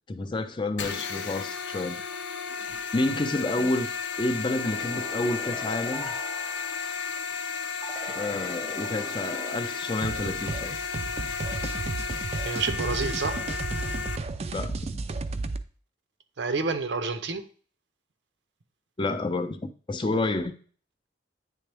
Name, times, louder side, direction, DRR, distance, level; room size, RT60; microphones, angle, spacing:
voice 1, 0.1-2.0 2.9-6.1 8.2-10.7 11.6-11.7 14.5-14.8 19.0-20.5, left 2 dB, 25° left, 0.5 m, -29 dB
sound 1, 0.8-14.2, left 5 dB, 90° left, 0.6 m, -33 dB
sound 2, 4.6-7.2 7.8-10.3, equal, ahead, 0.8 m, -41 dB
sound 3, 10.0-15.6, right 3 dB, 35° right, 0.4 m, -33 dB
voice 2, 12.4-13.5 16.4-17.4, right 4 dB, 75° right, 0.7 m, -29 dB
9.2 x 3.4 x 3.4 m
head